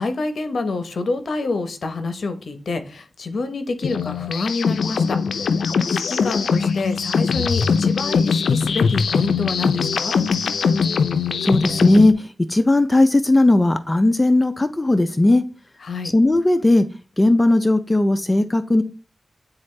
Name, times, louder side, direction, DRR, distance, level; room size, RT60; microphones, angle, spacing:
voice 1, 0.0-5.4 5.9-10.1 15.8-16.1, left 3 dB, 65° left, 9 dB, 0.9 m, -27 dB
sound 1, 3.8-12.1, left 5 dB, 85° left, 0.4 m, -21 dB
voice 2, 11.4-15.4 16.1-16.9 17.2-18.8, left 2 dB, 20° left, 9 dB, 0.5 m, -17 dB
8.9 x 3.9 x 3.2 m, 0.34 s
cardioid pair, 75°, 0 cm